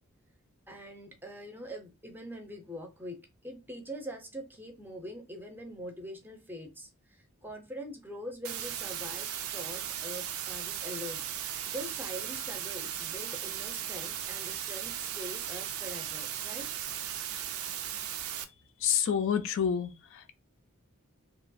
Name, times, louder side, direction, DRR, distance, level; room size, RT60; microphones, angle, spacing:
voice 1, 0.7-11.2 11.6-16.7, equal, 10° right, 0.5 m, -43 dB
sound 1, 8.4-18.4, right 10 dB, 85° right, 0.4 m, -37 dB
voice 2, 18.8-20.3, left 8 dB, 60° left, 0.4 m, -29 dB
2.9 x 2.3 x 2.5 m
head